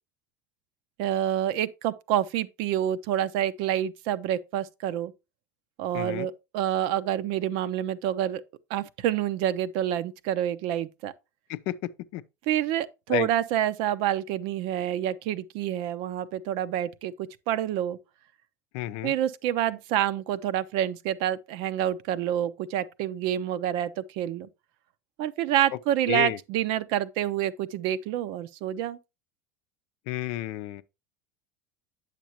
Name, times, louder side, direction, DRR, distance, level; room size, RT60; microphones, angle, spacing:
voice 1, 1.0-5.1 5.8-8.4 8.7-11.1 12.5-18.0 19.0-24.5 25.2-29.0, right 11 dB, 60° right, 0.7 m, -28 dB
voice 2, 5.9-6.3 11.5-12.2 13.1-13.3 18.7-19.1 26.1-26.4 30.1-30.8, left 14 dB, 60° left, 0.6 m, -31 dB
9.1 x 6.7 x 2.9 m
hypercardioid pair, 80°, 10 cm